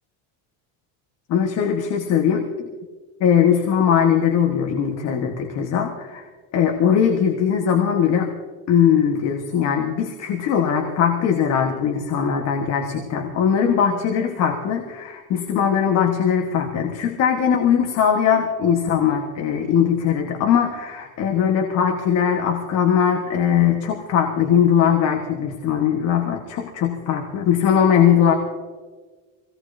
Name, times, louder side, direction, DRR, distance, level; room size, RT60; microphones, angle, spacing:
voice 1, 1.3-2.4 3.2-6.3 6.5-8.3 8.7-28.3, left 8 dB, 45° left, 2 dB, 1.5 m, -20 dB
24.5 x 18.0 x 2.8 m, 1.4 s
cardioid pair, 170°, 37 cm